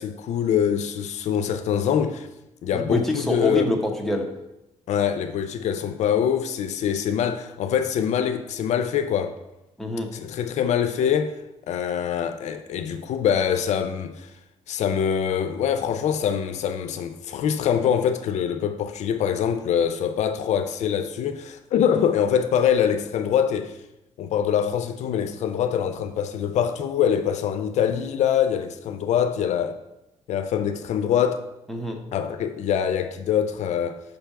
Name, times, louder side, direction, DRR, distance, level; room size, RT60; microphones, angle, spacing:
voice 1, 0.0-2.3 2.6-3.7 4.9-9.4 10.1-11.4 11.7-14.3 14.7-23.8 24.2-29.8 30.3-31.4 32.1-34.0, left 8 dB, 75° left, 0.4 m, -24 dB
voice 2, 2.7-4.3 9.8-10.1 31.7-32.0, left 1 dB, ahead, 0.8 m, -26 dB
5.3 x 3.4 x 5.7 m
cardioid pair, 115°, 12 cm